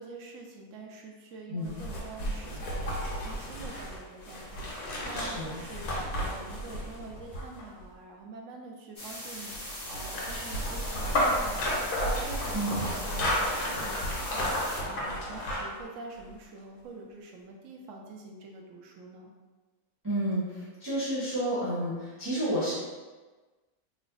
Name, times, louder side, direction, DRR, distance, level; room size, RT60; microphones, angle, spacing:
voice 1, 0.0-19.3, right 3 dB, 70° right, 1 dB, 0.8 m, -46 dB
sound 1, 1.6-7.8 9.5-15.8 16.2-16.3, equal, 85° left, 1.4 m, -32 dB
voice 2, 5.1-5.6 12.5-12.8 20.0-22.7, right 1 dB, 15° right, -10 dB, 0.9 m, -31 dB
sound 2, 9.0-14.8, left 1 dB, 35° left, 1.0 m, -41 dB
3.2 x 2.1 x 3.8 m, 1.3 s
omnidirectional pair, 1.6 m